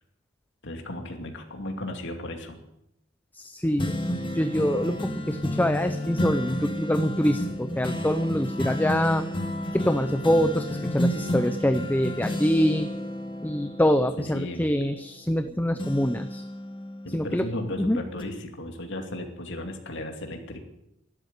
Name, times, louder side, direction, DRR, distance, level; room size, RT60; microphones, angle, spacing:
voice 1, 0.6-2.6 14.2-14.7 17.0-20.6, left 1 dB, 60° left, 4 dB, 2.6 m, -35 dB
voice 2, 3.3-4.0 4.3-9.2 9.7-12.9 13.4-16.4 17.1-17.4 17.8-18.0, equal, 10° left, 9 dB, 0.6 m, -25 dB
sound 1, 3.8-15.4 15.8-17.7 18.2-18.3, left 1 dB, 25° left, 1.7 m, -31 dB
12.5 x 12.0 x 9.5 m, 0.85 s
head